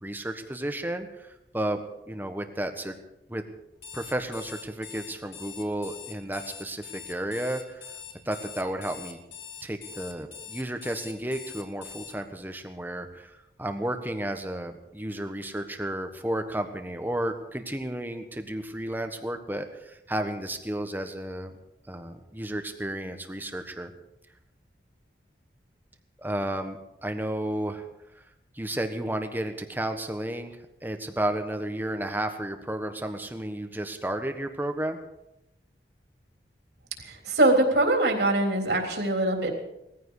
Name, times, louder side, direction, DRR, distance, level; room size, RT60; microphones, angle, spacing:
voice 1, 0.0-3.0 3.3-3.4 3.9-7.9 8.2-9.2 9.6-21.5 21.9-23.9 26.2-27.9 28.1-28.2 28.5-30.5 30.8-35.0, right 1 dB, 10° right, 6 dB, 1.3 m, -32 dB
Alarm, 3.7-12.1, left 8 dB, 80° left, 2.5 m, -43 dB
voice 2, 37.0-39.5, right 2 dB, 70° right, 2 dB, 3.7 m, -23 dB
19.5 x 15.0 x 4.9 m, 0.86 s
head